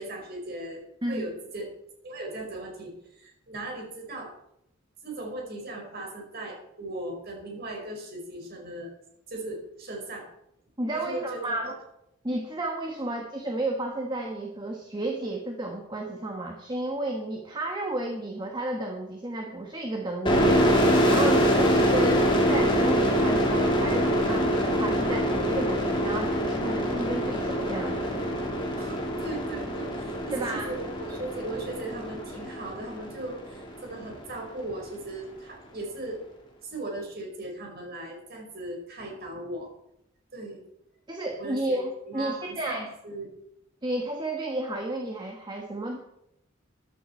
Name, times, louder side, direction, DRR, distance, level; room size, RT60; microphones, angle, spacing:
voice 1, 0.0-1.7 2.0-4.3 5.0-8.9 9.3-10.3 10.9-11.7 28.8-36.2 36.6-39.7 40.3-40.6 41.4-41.8 42.0-43.3, right 2 dB, 55° right, 1 dB, 4.9 m, -38 dB
voice 2, 10.8-11.7 12.2-28.3 30.3-30.7 41.1-42.9 43.8-46.0, right 1 dB, 25° right, 2 dB, 1.3 m, -32 dB
sound 1, 20.3-33.7, equal, 25° left, 2.9 m, -25 dB
14.0 x 12.0 x 4.5 m, 0.80 s
head